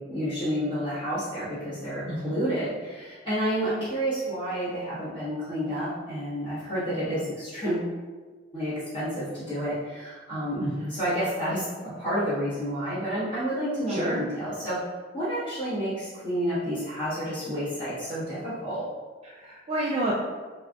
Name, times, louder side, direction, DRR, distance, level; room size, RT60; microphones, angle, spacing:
voice 1, 0.1-7.9 8.5-14.8 15.1-18.9, equal, 30° left, -13 dB, 1.3 m, -30 dB
voice 2, 2.1-2.4 10.6-10.9 13.9-14.2 19.2-20.1, right 1 dB, 35° right, -5 dB, 0.4 m, -30 dB
4.4 x 2.5 x 2.3 m, 1.4 s
head